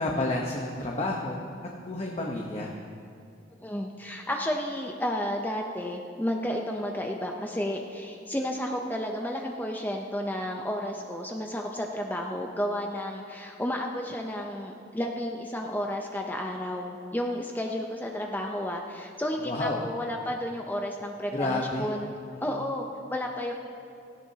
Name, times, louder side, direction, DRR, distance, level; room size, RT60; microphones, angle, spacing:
voice 1, 0.0-1.4 1.8-2.7 19.4-19.9 21.3-21.9 22.5-22.6, left 2 dB, 35° left, -1 dB, 1.0 m, -30 dB
voice 2, 3.6-22.1 22.4-23.5, equal, 10° left, 1 dB, 0.6 m, -32 dB
17.5 x 15.0 x 2.8 m, 2.5 s
head